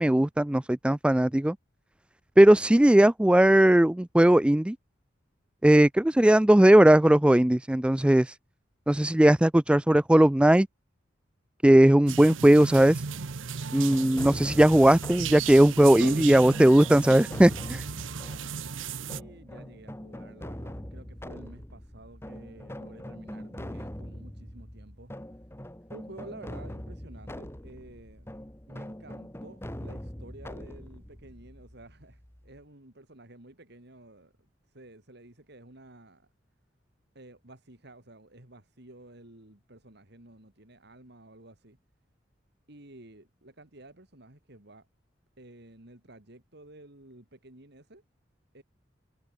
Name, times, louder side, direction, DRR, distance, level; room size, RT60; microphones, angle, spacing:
voice 1, 0.0-1.6 2.4-4.8 5.6-8.4 8.9-10.7 11.6-13.0 13.7-17.8, right 1 dB, 5° right, 0.3 m, -19 dB
sound 1, 12.1-19.2, right 6 dB, 85° right, 0.8 m, -35 dB
sound 2, 13.9-32.6, equal, 15° left, 1.7 m, -42 dB
voice 2, 18.8-25.1 25.9-28.3 28.7-34.3 34.7-36.3 37.1-41.8 42.7-44.9 45.4-48.0 48.5-48.6, right 1 dB, 60° right, 3.2 m, -51 dB
head